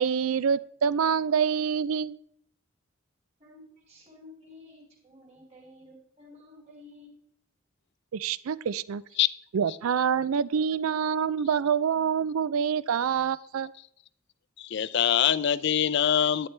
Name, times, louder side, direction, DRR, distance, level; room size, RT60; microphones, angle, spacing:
voice 1, 0.0-2.2 8.1-9.0 9.5-13.7, right 7 dB, 85° right, 19 dB, 0.4 m, -26 dB
voice 2, 3.4-7.2, left 2 dB, 30° right, 0 dB, 2.8 m, -52 dB
voice 3, 14.6-16.5, left 9 dB, 55° left, 17 dB, 0.4 m, -24 dB
11.0 x 9.7 x 3.3 m, 0.64 s
head